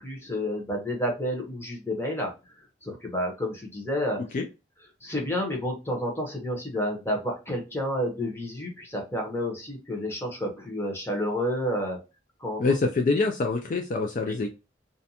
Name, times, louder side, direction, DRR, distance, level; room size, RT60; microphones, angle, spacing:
voice 1, 0.0-2.3 2.8-4.2 5.0-12.0 12.4-12.6, equal, 15° left, 0 dB, 0.8 m, -30 dB
voice 2, 12.6-14.5, left 3 dB, 45° left, 3 dB, 0.3 m, -25 dB
2.5 x 2.2 x 2.7 m, 0.28 s
head